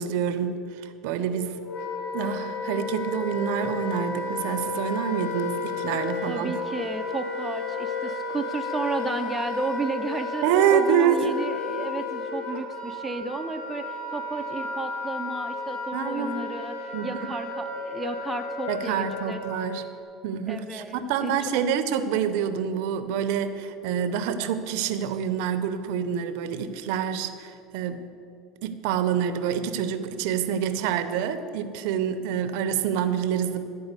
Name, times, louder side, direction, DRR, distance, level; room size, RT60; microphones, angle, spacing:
voice 1, 0.0-1.6 2.1-6.6 10.4-11.3 15.9-16.3 16.9-17.1 18.7-19.9 20.2-28.1 28.6-33.7, right 8 dB, 75° right, 10 dB, 0.6 m, -27 dB
Wind instrument woodwind instrument, 1.2-20.0, left 3 dB, 70° left, 1.7 m, -33 dB
voice 2, 6.3-10.4 10.7-19.4 20.5-21.6, right 3 dB, 10° right, 4 dB, 0.6 m, -33 dB
11.5 x 4.8 x 8.1 m, 2.6 s
supercardioid pair, 125°, 0 cm